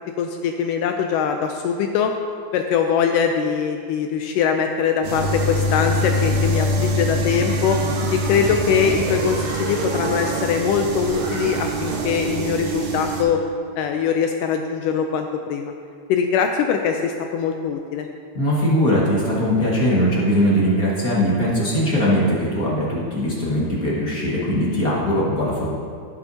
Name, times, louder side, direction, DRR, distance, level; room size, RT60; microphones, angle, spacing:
voice 1, 0.2-2.1 2.5-7.8 8.1-13.4 13.8-15.7 16.1-18.1, left 7 dB, 80° left, 4 dB, 2.0 m, -22 dB
sound 1, 5.0-13.2, equal, 70° right, 2.8 m, -24 dB
voice 2, 18.3-25.7, equal, 35° left, -7 dB, 1.6 m, -20 dB
15.5 x 8.1 x 2.8 m, 2.1 s
omnidirectional pair, 4.1 m